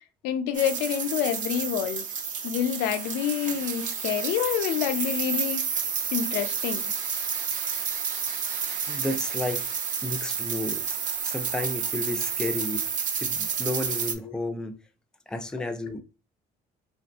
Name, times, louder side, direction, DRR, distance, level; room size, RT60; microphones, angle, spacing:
voice 1, 0.2-2.1 2.4-5.6 6.1-6.9 14.2-14.3, left 9 dB, 90° left, 0.4 m, -27 dB
sound 1, 0.6-14.2, right 6 dB, 50° right, 0.5 m, -30 dB
voice 2, 8.9-9.6 10.0-10.8 11.2-12.8 13.2-14.8 15.3-16.0, left 2 dB, 5° left, 0.3 m, -32 dB
2.6 x 2.4 x 2.2 m
cardioid pair, 110°, 17 cm